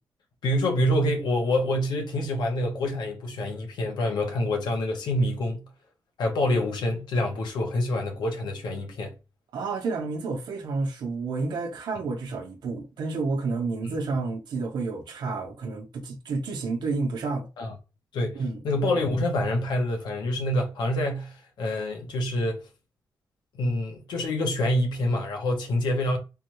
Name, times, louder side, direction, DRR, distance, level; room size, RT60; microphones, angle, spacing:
voice 1, 0.4-5.7 6.2-9.1 13.8-14.0 17.6-17.7 18.1-22.6 23.5-26.2, left 1 dB, 90° left, 1.0 m, -26 dB
voice 2, 9.5-17.5 18.3-18.6, right 3 dB, 85° right, 0.8 m, -30 dB
3.5 x 2.3 x 3.0 m
wide cardioid pair, 150°, 7 cm